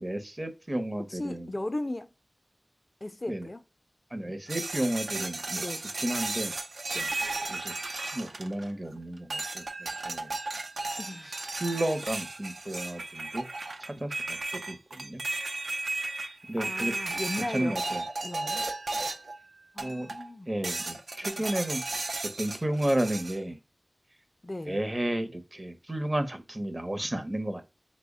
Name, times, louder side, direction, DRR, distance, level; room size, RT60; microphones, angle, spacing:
voice 1, 0.0-1.5 3.3-3.5 4.1-5.7 6.0-6.5 7.5-7.7 8.0-9.7 10.0-10.3 11.6-13.4 13.8-15.2 16.5-16.9 17.4-18.0 19.8-20.1 20.5-21.8 22.4-23.6 24.7-27.7, right 1 dB, 30° right, 0.6 m, -32 dB
voice 2, 1.1-2.1 3.0-3.6 5.6-5.9 6.9-7.1 11.0-11.5 16.6-17.8 18.2-18.7 19.7-20.5 21.4-21.5 24.4-24.8, left 1 dB, 35° left, 0.3 m, -37 dB
sound 1, 4.5-8.9 9.3-19.4 19.8-20.3 20.6-23.4, right 3 dB, 85° right, 0.4 m, -35 dB
3.3 x 2.0 x 3.6 m
wide cardioid pair, 55°, 0 cm